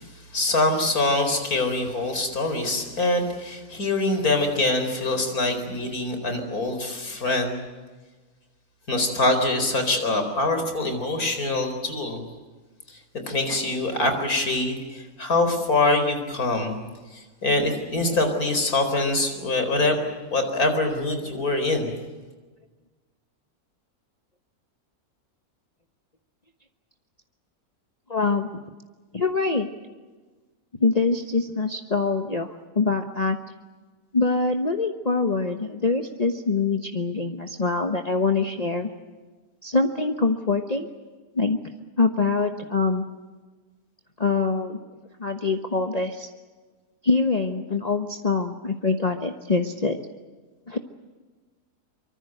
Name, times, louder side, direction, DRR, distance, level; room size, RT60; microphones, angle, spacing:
voice 1, 0.3-7.6 8.9-12.2 13.2-16.8 17.1-20.0 20.3-21.9, left 2 dB, 80° left, 6 dB, 4.8 m, -24 dB
voice 2, 28.1-28.5 29.1-29.7 30.8-33.4 34.1-38.9 39.6-40.9 41.3-41.6 42.0-43.0 44.2-44.8 45.2-46.3 47.0-50.0 50.7-50.8, left 4 dB, 30° left, 5 dB, 1.2 m, -24 dB
24.5 x 24.0 x 7.9 m, 1.3 s
omnidirectional pair, 1.5 m